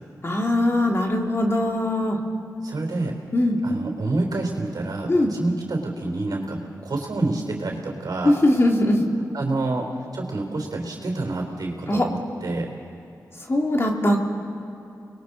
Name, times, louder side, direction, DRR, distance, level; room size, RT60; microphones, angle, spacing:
voice 1, 0.2-2.2 3.3-3.6 5.1-5.3 8.2-9.0 11.9-12.1 13.5-14.2, left 1 dB, 40° left, 0 dB, 2.8 m, -21 dB
voice 2, 2.6-3.1 3.6-6.6 6.8-8.4 9.3-9.8 10.1-12.7, right 2 dB, 70° right, 2 dB, 3.7 m, -28 dB
30.0 x 21.5 x 4.1 m, 2.8 s
cardioid pair, 50°, 7 cm